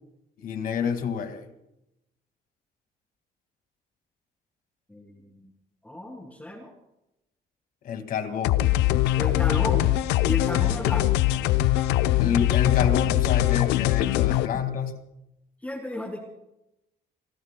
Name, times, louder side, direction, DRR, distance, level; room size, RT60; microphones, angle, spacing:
voice 1, 0.4-1.5 7.8-8.6 10.6-10.7 12.2-14.9, left 7 dB, 55° left, 8 dB, 2.0 m, -28 dB
voice 2, 4.9-5.4 5.8-6.7 9.2-9.9 10.2-11.1 14.5-14.6 15.6-16.2, left 1 dB, 10° left, 2 dB, 2.8 m, -33 dB
sound 1, 8.4-14.5, left 15 dB, 90° left, 0.6 m, -22 dB
30.0 x 21.5 x 2.2 m, 0.86 s
cardioid pair, 110°, 17 cm